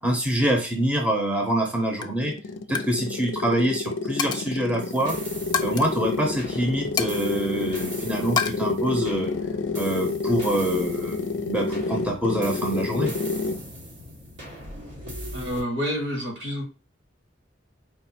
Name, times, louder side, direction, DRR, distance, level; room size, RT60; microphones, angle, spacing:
voice 1, 0.0-2.3 2.7-5.2 5.6-9.3 9.8-13.1, right 1 dB, 10° right, 0 dB, 0.7 m, -25 dB
Coin (dropping), 1.4-1.7 2.0-2.2 2.6-2.9 3.2-3.5 4.2-4.6 5.5-5.9 7.0-7.9 8.4-8.5, left 6 dB, 25° left, 0.4 m, -29 dB
sound 1, 1.9-13.7, left 3 dB, 90° left, 0.4 m, -29 dB
sound 2, 4.8-15.6, right 1 dB, 90° right, 1.8 m, -40 dB
voice 2, 15.3-16.6, equal, 65° right, 2 dB, 1.6 m, -28 dB
4.5 x 2.1 x 4.2 m, 0.32 s
head